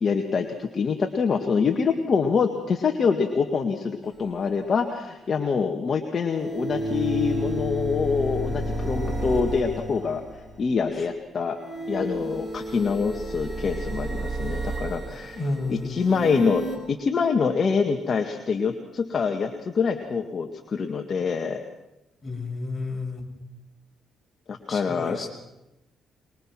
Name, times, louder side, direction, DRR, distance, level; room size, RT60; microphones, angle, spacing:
voice 1, 0.0-10.2 10.6-11.6 11.9-15.4 15.7-21.6 24.5-25.3, left 5 dB, 45° left, 3 dB, 2.0 m, -25 dB
sound 1, 4.0-4.1 6.2-10.7 11.5-16.8, right 1 dB, 20° right, 6.7 m, -31 dB
voice 2, 15.3-16.0 22.2-23.3 24.7-25.3, left 3 dB, 30° left, 1 dB, 6.1 m, -31 dB
24.0 x 22.5 x 6.2 m, 0.94 s
cardioid pair, 90°, 0 cm